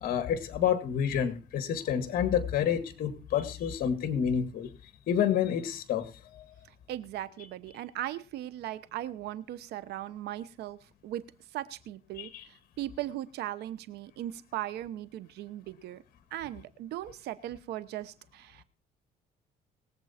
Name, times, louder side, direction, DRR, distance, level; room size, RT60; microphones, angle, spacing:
voice 1, 0.0-4.7 5.1-6.4 12.2-12.4, left 8 dB, 60° left, 10 dB, 1.8 m, -29 dB
voice 2, 6.9-10.8 11.0-11.2 11.5-16.0 16.3-18.6, right 13 dB, 80° right, 16 dB, 1.0 m, -38 dB
21.0 x 7.9 x 4.3 m, 0.35 s
cardioid pair, 110°, 17 cm